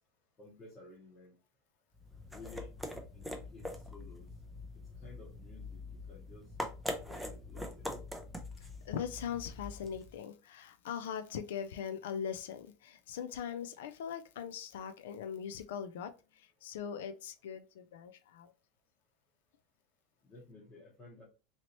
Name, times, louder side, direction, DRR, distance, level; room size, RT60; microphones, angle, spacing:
voice 1, 0.4-1.3 2.3-2.7 3.1-4.3 4.7-6.6 7.1-8.0 20.2-21.2, left 2 dB, 20° left, 0.8 m, -54 dB
sound 1, 1.9-10.2, left 1 dB, ahead, 0.4 m, -43 dB
voice 2, 8.8-18.5, left 8 dB, 85° left, 0.3 m, -41 dB
3.0 x 2.8 x 2.9 m
supercardioid pair, 170°, 0 cm